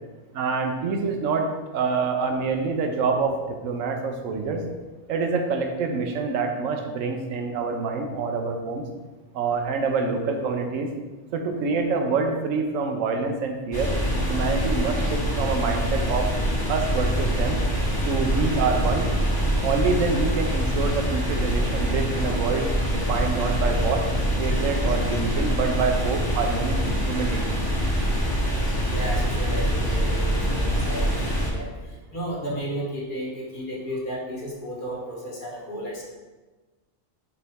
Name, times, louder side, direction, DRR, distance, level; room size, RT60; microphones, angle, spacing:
voice 1, 0.3-1.5 1.7-4.6 5.1-8.8 9.3-10.9 11.3-13.9 14.3-16.3 16.7-17.6 18.1-19.1 19.6-24.0 24.4-27.6, right 4 dB, 80° right, 4 dB, 1.1 m, -26 dB
sound 1, 13.7-31.5, equal, 20° left, 0.9 m, -24 dB
voice 2, 28.9-31.7 32.1-36.2, equal, 40° left, -3 dB, 1.4 m, -33 dB
6.8 x 4.2 x 3.5 m, 1.3 s
omnidirectional pair, 1.3 m